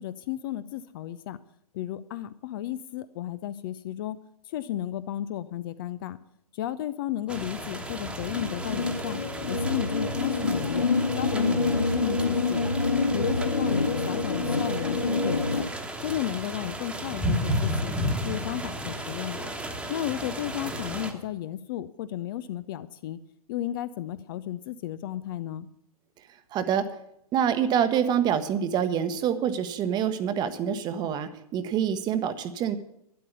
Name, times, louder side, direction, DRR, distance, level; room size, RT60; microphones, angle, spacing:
voice 1, 0.0-1.4 1.7-4.2 4.4-6.2 6.5-9.2 9.5-10.9 11.1-12.7 13.1-15.7 16.0-18.0 18.2-19.5 19.9-23.2 23.5-25.7, left 12 dB, 35° left, 14 dB, 0.5 m, -33 dB
sound 1, 7.3-21.1, equal, 5° right, 1.3 m, -33 dB
sound 2, 8.3-15.6, left 3 dB, 80° left, 1.6 m, -27 dB
voice 2, 26.5-26.9 27.3-32.8, right 8 dB, 20° right, 11 dB, 1.0 m, -26 dB
12.0 x 9.9 x 6.8 m, 0.77 s
figure-of-eight pair, 115°, 20 cm